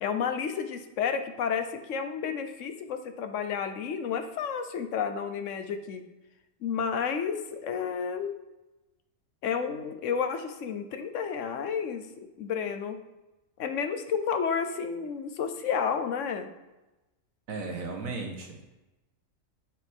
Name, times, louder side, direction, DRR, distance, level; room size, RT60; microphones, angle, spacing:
voice 1, 0.0-6.0 6.6-8.3 9.4-13.0 13.6-16.5, left 6 dB, 65° left, 7 dB, 1.1 m, -31 dB
voice 2, 17.5-18.7, right 3 dB, 90° right, 1 dB, 1.8 m, -36 dB
9.5 x 7.4 x 3.6 m, 1.0 s
omnidirectional pair, 1.4 m